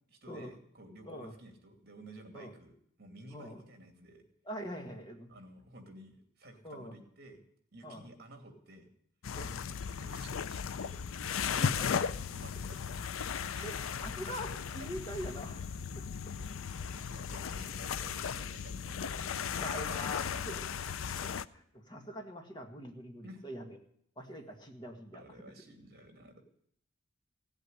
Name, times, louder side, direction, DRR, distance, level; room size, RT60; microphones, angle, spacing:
voice 1, 0.1-4.2 5.3-7.4 7.7-8.9 9.9-11.9 12.3-12.8 13.2-13.9 14.8-14.9 16.4-16.5 17.0-20.1 23.2-23.4 25.1-26.4, right 1 dB, 50° right, 5 dB, 2.6 m, -53 dB
voice 2, 3.3-3.6 4.4-5.3 6.6-6.9 7.8-8.1 9.4-9.6 11.5-12.1 13.6-15.7 15.9-16.1 19.6-23.8 24.1-25.2, equal, 20° left, 3 dB, 1.8 m, -44 dB
sound 1, 9.2-21.4, left 7 dB, 90° left, 0.5 m, -36 dB
16.5 x 8.1 x 9.9 m, 0.68 s
head